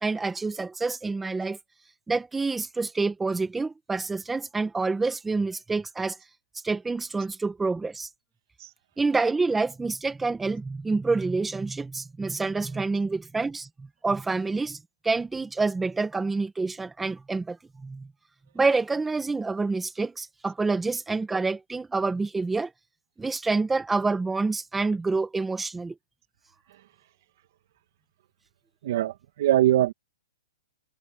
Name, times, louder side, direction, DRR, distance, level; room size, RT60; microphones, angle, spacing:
voice 1, 0.0-1.6 2.1-6.2 6.6-8.1 9.0-14.8 15.0-18.1 18.6-22.7 23.2-26.0, right 3 dB, 5° right, 1.9 m, -27 dB
voice 2, 28.8-29.9, right 13 dB, 50° right, 2.1 m, -22 dB
hypercardioid pair, 160°, 2 cm